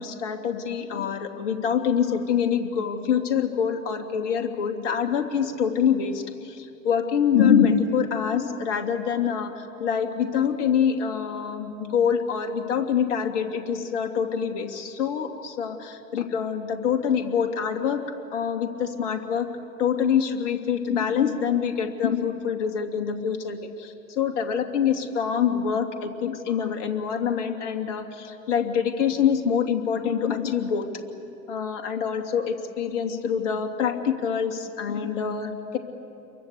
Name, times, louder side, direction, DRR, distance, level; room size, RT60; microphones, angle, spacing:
voice 1, 0.0-18.0 18.3-19.5 19.8-30.9 31.5-35.8, left 7 dB, 60° left, 6 dB, 2.9 m, -25 dB
28.5 x 23.5 x 8.5 m, 2.7 s
hypercardioid pair, 95°, 41 cm